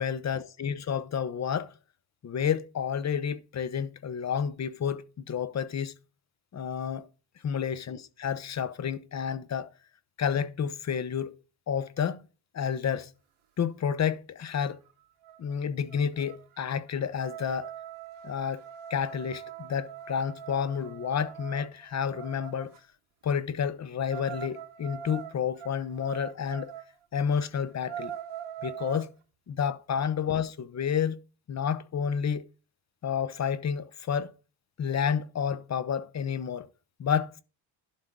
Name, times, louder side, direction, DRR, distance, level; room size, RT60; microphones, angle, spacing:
voice 1, 0.0-1.7 2.2-5.9 6.5-7.1 7.4-9.7 10.2-11.3 11.7-12.2 12.5-13.1 13.6-14.8 15.4-17.7 18.2-18.6 18.9-22.7 23.2-26.7 27.1-28.1 28.6-29.1 29.5-31.2 31.5-32.5 33.0-34.3 34.8-36.7 37.0-37.4, left 7 dB, 35° left, 0.7 m, -30 dB
sound 1, 14.9-15.0 15.2-15.5 15.9-22.8 24.1-26.9 27.3-27.4 27.7-29.1, right 9 dB, 85° right, 1.4 m, -42 dB
11.5 x 3.9 x 6.0 m
cardioid pair, 160°, 48 cm